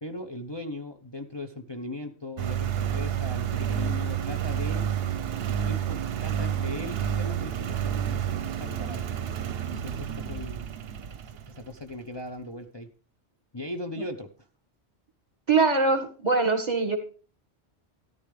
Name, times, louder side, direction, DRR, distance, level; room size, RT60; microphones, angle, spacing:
voice 1, 0.0-4.8 5.4-9.0 9.7-10.7 11.5-12.9 13.5-14.3, left 1 dB, 25° left, 4 dB, 0.8 m, -38 dB
Engine, 2.4-11.8, right 9 dB, 65° right, 0.9 m, -30 dB
voice 2, 15.5-17.0, right 4 dB, 40° right, 6 dB, 1.8 m, -23 dB
14.0 x 11.0 x 3.3 m, 0.37 s
omnidirectional pair, 1.1 m